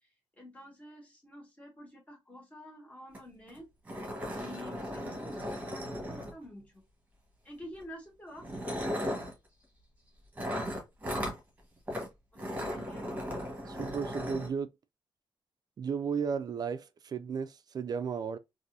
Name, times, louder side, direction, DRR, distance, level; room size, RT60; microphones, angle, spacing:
voice 1, 0.0-3.7 4.3-6.8 7.4-8.5 12.3-13.1, left 1 dB, 15° left, 1.7 m, -49 dB
sound 1, 3.1-3.2 3.5-3.6 3.9-6.6 7.6-7.8 8.4-9.3 10.4-11.4 11.9-12.1 12.4-14.5, equal, 20° right, 1.4 m, -36 dB
voice 2, 13.7-14.7 15.8-18.4, right 6 dB, 45° right, 0.4 m, -34 dB
4.0 x 2.7 x 2.6 m
wide cardioid pair, 150°, 9 cm